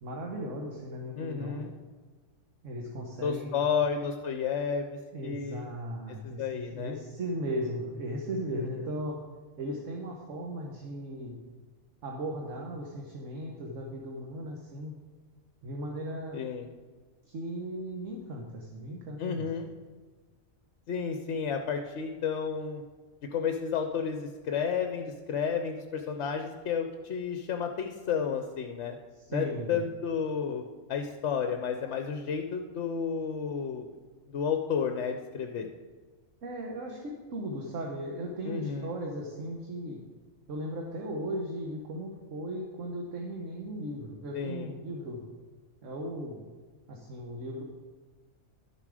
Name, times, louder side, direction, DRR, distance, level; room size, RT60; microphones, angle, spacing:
voice 1, 0.0-1.6 2.6-3.6 5.1-9.2 9.6-11.4 12.0-14.9 15.6-16.4 17.2-19.5 29.1-29.8 36.4-40.0 40.5-45.2 45.8-46.4 46.9-47.6, equal, 65° right, 0 dB, 1.4 m, -37 dB
voice 2, 1.1-1.7 3.2-5.7 6.2-7.0 8.5-8.7 16.3-16.7 19.2-19.7 20.9-22.8 23.3-29.0 29.3-30.6 30.9-33.9 34.3-35.7 38.4-38.9 44.3-44.7, left 6 dB, 60° left, 5 dB, 0.9 m, -32 dB
11.5 x 7.2 x 4.9 m, 1.4 s
omnidirectional pair, 1.4 m